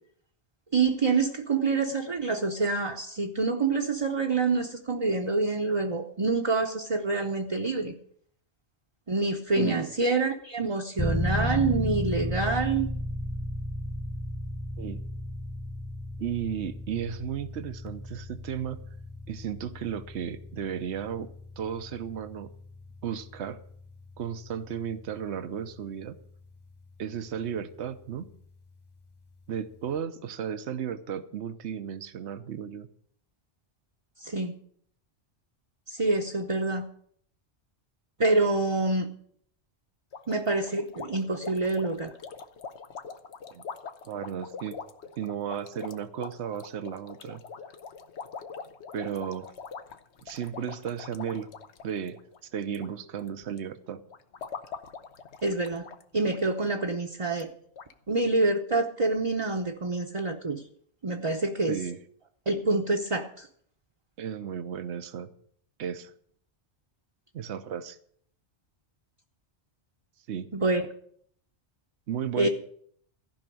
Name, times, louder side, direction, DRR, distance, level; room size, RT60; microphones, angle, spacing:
voice 1, 0.7-7.9 9.1-12.9 34.2-34.5 35.9-36.9 38.2-39.1 40.3-42.1 55.4-55.9 56.1-57.5 58.1-60.6 61.0-61.8 62.5-63.5 70.5-70.8 72.4-72.5, right 3 dB, 30° right, 1 dB, 0.9 m, -26 dB
voice 2, 9.5-9.8 14.8-15.0 16.2-18.8 19.3-21.3 21.6-22.5 23.0-23.6 24.2-26.1 27.0-28.3 29.5-32.9 43.5-43.6 44.0-44.8 45.2-47.4 48.9-49.5 50.2-51.5 51.8-52.2 52.5-54.0 61.7-62.0 64.2-65.3 65.8-66.1 67.3-68.0 70.3-70.5 72.1-72.5, right 8 dB, 70° right, 11 dB, 1.1 m, -34 dB
sound 1, 11.0-27.7, left 1 dB, 20° left, 1.2 m, -35 dB
sound 2, 40.1-52.9 53.2-53.6 54.1-56.0 56.3-56.4 56.8-56.9 57.4-57.5 57.8-57.9, left 5 dB, 75° left, 1.2 m, -43 dB
15.0 x 5.7 x 9.2 m, 0.63 s
omnidirectional pair, 1.2 m